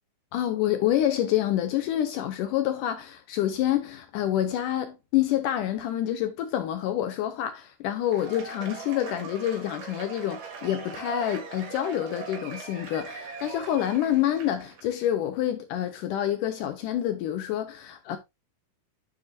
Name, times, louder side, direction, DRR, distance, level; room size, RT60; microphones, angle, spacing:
voice 1, 0.3-18.2, left 11 dB, 75° left, 2.1 m, -27 dB
Cheering / Applause / Crowd, 8.0-14.8, right 5 dB, 80° right, 4.1 m, -40 dB
9.5 x 7.1 x 2.6 m
omnidirectional pair, 4.2 m